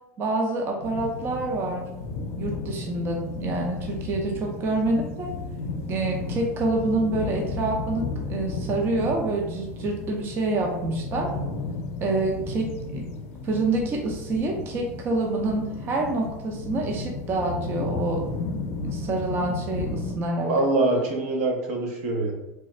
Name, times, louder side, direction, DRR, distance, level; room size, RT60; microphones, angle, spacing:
voice 1, 0.2-1.9 2.4-5.3 5.9-11.3 12.0-13.1 13.4-18.2 18.8-20.5, right 2 dB, 30° right, 1 dB, 0.5 m, -27 dB
sound 1, 0.8-20.2, left 3 dB, 65° left, 0.5 m, -33 dB
voice 2, 20.4-22.3, right 2 dB, 75° right, 1 dB, 1.0 m, -24 dB
3.3 x 2.4 x 4.2 m, 0.97 s
supercardioid pair, 140°, 7 cm